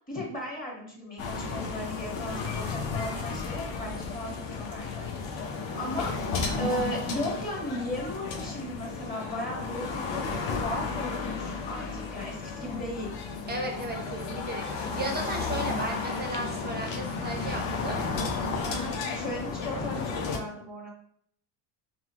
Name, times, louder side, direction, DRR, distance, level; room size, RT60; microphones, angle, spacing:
voice 1, 0.1-6.2 6.6-13.1 18.6-20.9, left 1 dB, 20° left, -3 dB, 1.5 m, -36 dB
sound 1, 1.2-20.4, left 4 dB, 75° left, 1.0 m, -33 dB
voice 2, 13.5-18.0, right 1 dB, 20° right, 2 dB, 0.8 m, -35 dB
5.6 x 2.4 x 2.9 m, 0.64 s
cardioid pair, 110°, 48 cm